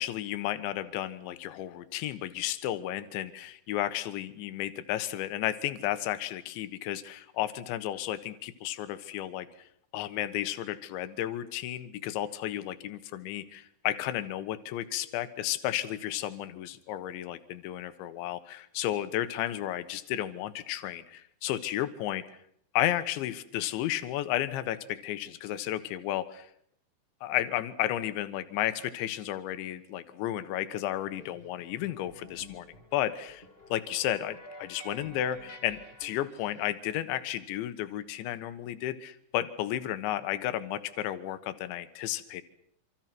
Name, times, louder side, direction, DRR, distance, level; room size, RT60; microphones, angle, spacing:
voice 1, 0.0-9.5 9.9-22.2 22.7-26.5 27.2-32.7 32.9-33.4 33.7-42.4, left 13 dB, 80° left, 12 dB, 3.6 m, -33 dB
sound 1, 31.2-36.7, left 1 dB, 15° left, 2.9 m, -51 dB
27.0 x 26.5 x 6.1 m, 0.68 s
omnidirectional pair, 5.2 m